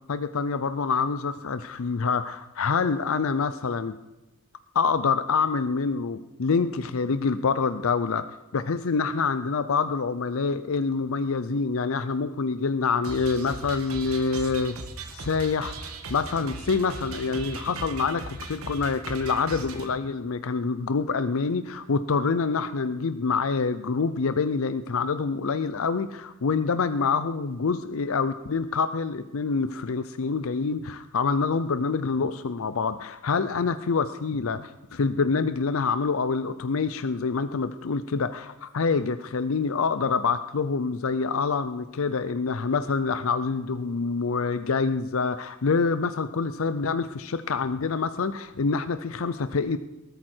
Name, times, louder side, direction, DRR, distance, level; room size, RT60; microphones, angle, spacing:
voice 1, 0.1-3.9 4.7-8.2 8.5-14.8 15.1-49.8, left 4 dB, 70° left, 11 dB, 0.5 m, -26 dB
sound 1, 13.0-19.9, right 3 dB, 80° right, 1.8 m, -38 dB
19.5 x 9.0 x 4.5 m, 1.0 s
head